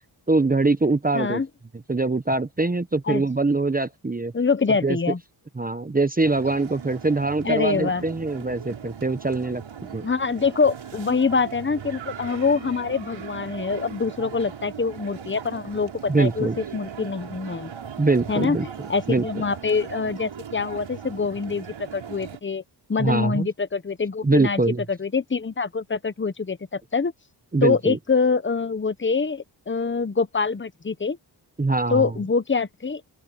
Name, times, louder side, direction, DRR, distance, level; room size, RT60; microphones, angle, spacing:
voice 1, 0.3-1.4 1.9-4.3 4.8-5.0 5.6-9.6 9.9-10.1 16.1-16.6 18.0-18.7 19.1-19.2 23.0-23.5 24.2-24.8 27.5-28.0 31.6-32.1, right 3 dB, 20° right, 1.0 m, -23 dB
voice 2, 1.1-1.5 3.1-3.2 4.3-5.2 7.4-8.0 10.0-17.7 18.3-22.6 22.9-24.6 24.9-27.1 27.6-31.2 31.9-33.2, left 4 dB, 25° left, 1.1 m, -25 dB
sound 1, 6.2-22.4, right 8 dB, 90° right, 6.6 m, -39 dB
open air
cardioid pair, 75°, 45 cm